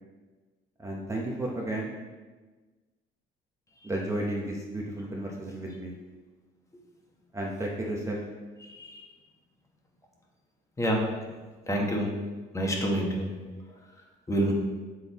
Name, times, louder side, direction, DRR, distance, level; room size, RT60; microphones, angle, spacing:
voice 1, 0.8-1.9 3.8-6.0 7.3-8.2, right 1 dB, 15° right, -2 dB, 0.9 m, -33 dB
voice 2, 8.6-9.1 10.8-11.0 11.7-12.1 12.5-13.3 14.3-14.5, right 1 dB, 20° left, -1 dB, 1.2 m, -27 dB
6.2 x 3.8 x 4.1 m, 1.3 s
cardioid pair, 110°, 17 cm